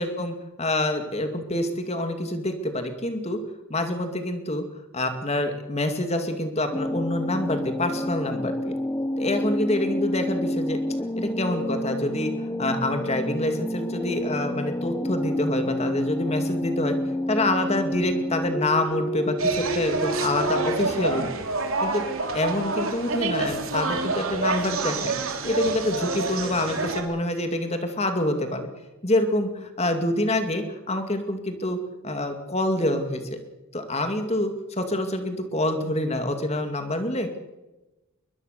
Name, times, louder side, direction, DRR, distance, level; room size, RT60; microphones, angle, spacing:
voice 1, 0.0-3.4 3.7-4.6 4.9-8.7 9.2-10.8 11.2-17.0 17.3-21.3 21.8-22.0 22.3-25.2 25.4-28.7 29.0-31.8 32.0-33.4 33.7-37.4, left 1 dB, 30° left, 6 dB, 2.4 m, -26 dB
sound 1, 6.7-20.8, left 1 dB, 15° left, 0.7 m, -29 dB
sound 2, 19.4-27.0, right 3 dB, 75° right, 3.2 m, -27 dB
22.5 x 21.0 x 6.7 m, 1.1 s
head